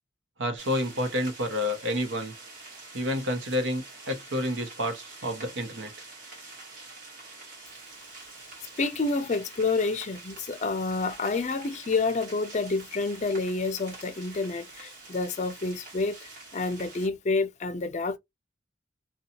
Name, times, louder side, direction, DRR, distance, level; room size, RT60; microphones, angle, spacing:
voice 1, 0.4-2.3 2.9-5.9, left 1 dB, 90° right, 0.8 m, -29 dB
sound 1, 0.6-17.1, right 3 dB, 45° right, 1.2 m, -46 dB
voice 2, 8.8-18.2, left 3 dB, 40° left, 0.4 m, -29 dB
2.6 x 2.2 x 2.7 m
head